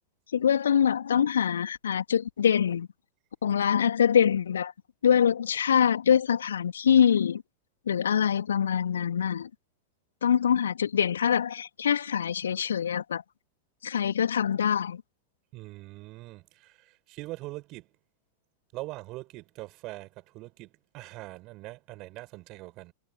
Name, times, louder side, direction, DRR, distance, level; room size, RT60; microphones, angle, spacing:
voice 1, 0.3-2.9 3.4-4.7 5.0-7.4 7.9-9.5 10.2-13.2 13.8-15.0, left 8 dB, 65° left, 3.4 m, -24 dB
voice 2, 15.5-17.9 18.7-22.9, right 20 dB, 40° right, 7.4 m, -42 dB
figure-of-eight pair, 90°, 0 cm